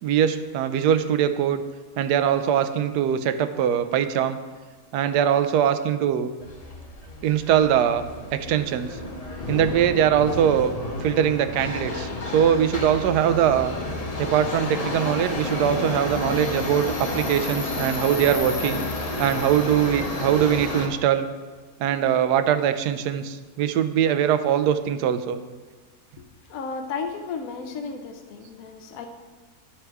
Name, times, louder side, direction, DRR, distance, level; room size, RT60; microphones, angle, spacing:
voice 1, 0.0-1.6 2.0-4.4 4.9-6.3 7.2-8.1 8.3-9.0 9.5-10.7 11.0-13.7 14.2-18.9 19.2-21.3 21.8-25.4, right 9 dB, 90° right, 11 dB, 1.1 m, -22 dB
Subway metro underground, 6.4-20.9, left 2 dB, 35° left, 0.7 m, -31 dB
voice 2, 26.2-29.1, left 5 dB, 70° left, 5 dB, 1.1 m, -34 dB
11.0 x 4.5 x 4.6 m, 1.3 s
omnidirectional pair, 1.7 m